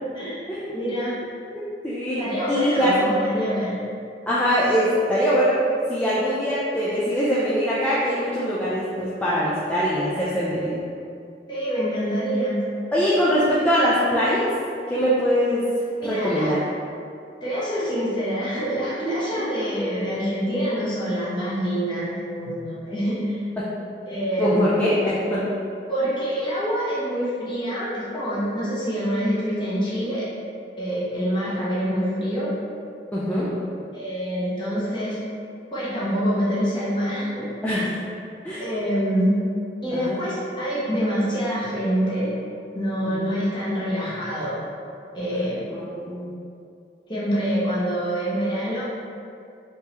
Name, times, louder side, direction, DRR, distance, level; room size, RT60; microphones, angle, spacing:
voice 1, 0.7-1.2 2.2-3.8 11.5-12.6 15.9-16.5 17.4-23.4 24.1-24.8 25.9-30.3 30.8-32.6 33.9-35.2 35.7-37.5 38.6-39.4 39.8-42.3 42.7-44.6 45.1-45.7 47.1-48.8, equal, 25° left, -9 dB, 0.9 m, -26 dB
voice 2, 1.5-2.2 2.5-2.9 4.3-5.6 5.9-10.8 12.9-14.5 14.9-15.6 16.0-16.6 23.6-23.7 24.4-25.5 33.1-33.5 37.6-37.9 38.4-38.6 40.0-40.2 43.2-43.3 45.7-46.3, equal, 10° left, -9 dB, 0.3 m, -22 dB
3.6 x 2.7 x 2.9 m, 2.5 s
head